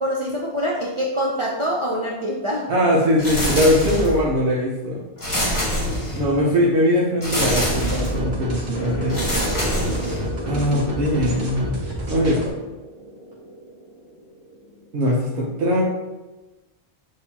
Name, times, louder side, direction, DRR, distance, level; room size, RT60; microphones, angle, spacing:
voice 1, 0.0-2.7 12.4-12.5, equal, 40° right, -4 dB, 0.4 m, -25 dB
voice 2, 2.7-5.0 5.4-9.2 10.4-11.8 12.1-12.4 14.9-15.8, equal, 90° right, -5 dB, 1.0 m, -21 dB
sound 1, 3.2-4.3 5.2-6.4 7.2-8.2 9.1-10.4, equal, 20° left, 0.9 m, -25 dB
sound 2, 7.4-12.5, right 1 dB, 70° right, 1.1 m, -30 dB
sound 3, 8.7-14.9, equal, 35° left, 0.4 m, -35 dB
6.5 x 2.7 x 2.8 m, 1.1 s
omnidirectional pair, 1.1 m